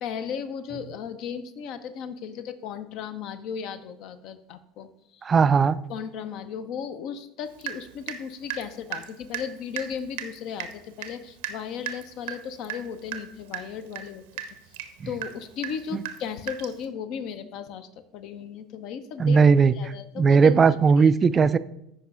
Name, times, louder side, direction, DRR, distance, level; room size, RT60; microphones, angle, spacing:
voice 1, 0.0-5.3 5.9-14.2 14.7-14.8 15.1-19.4 19.7-21.1, left 7 dB, 50° left, 11 dB, 0.6 m, -36 dB
voice 2, 5.2-5.8 15.9-16.0 19.2-19.7 20.2-21.6, right 5 dB, 25° right, 15 dB, 0.3 m, -18 dB
Water tap faucet / Drip, 7.6-8.2 8.5-16.9, right 11 dB, 65° right, 0.6 m, -37 dB
13.5 x 5.3 x 2.4 m, 0.82 s
figure-of-eight pair, 70°, 0 cm